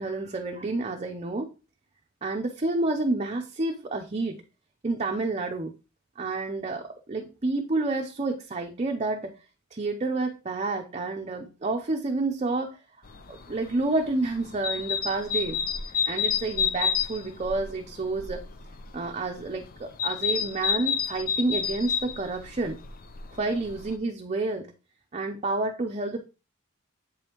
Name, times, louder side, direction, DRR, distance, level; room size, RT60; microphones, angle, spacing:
voice 1, 0.0-1.5 2.2-4.4 4.8-5.7 6.2-9.3 9.7-12.8 13.3-15.6 16.1-18.4 18.9-22.8 23.4-24.7 25.1-26.2, right 3 dB, 30° right, 3 dB, 0.6 m, -29 dB
sound 1, 13.0-23.9, left 7 dB, 45° left, 0.5 m, -30 dB
7.6 x 5.3 x 2.9 m, 0.31 s
head